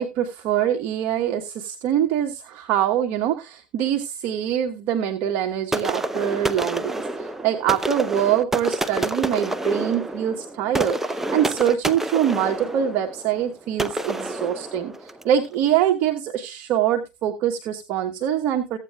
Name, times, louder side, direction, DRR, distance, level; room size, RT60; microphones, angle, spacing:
voice 1, 0.0-18.8, right 10 dB, 50° right, 4 dB, 1.1 m, -24 dB
sound 1, 5.7-15.4, right 1 dB, 10° right, 0.7 m, -28 dB
15.5 x 8.3 x 2.3 m, 0.26 s
hypercardioid pair, 90°, 4 cm